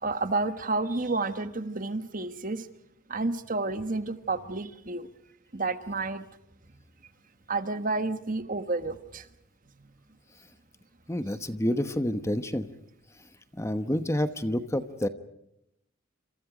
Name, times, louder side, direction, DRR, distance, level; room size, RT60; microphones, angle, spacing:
voice 1, 0.0-2.7 3.1-5.1 5.5-6.2 7.5-9.3, right 3 dB, 40° right, 11 dB, 1.3 m, -30 dB
voice 2, 11.1-12.7 13.6-15.1, left 1 dB, 15° left, 10 dB, 1.1 m, -28 dB
28.5 x 27.0 x 5.1 m, 0.79 s
head